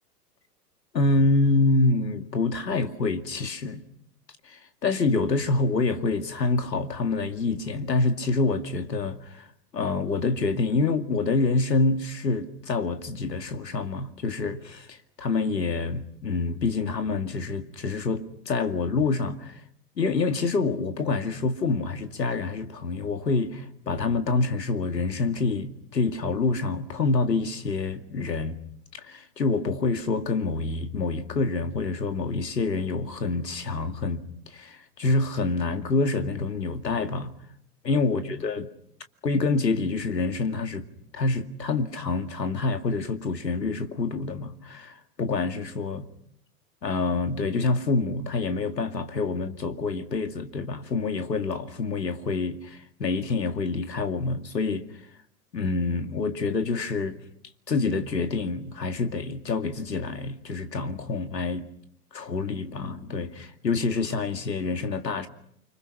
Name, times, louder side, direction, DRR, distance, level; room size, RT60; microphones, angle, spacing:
voice 1, 0.9-3.8 4.5-9.5 9.7-19.6 20.0-28.6 28.9-37.3 37.8-38.7 39.2-40.9 41.1-46.1 46.8-54.9 55.5-57.2 57.7-61.7 62.1-65.3, left 3 dB, 80° left, 2.3 m, -27 dB
29.5 x 25.5 x 6.0 m
figure-of-eight pair, 100°, 49 cm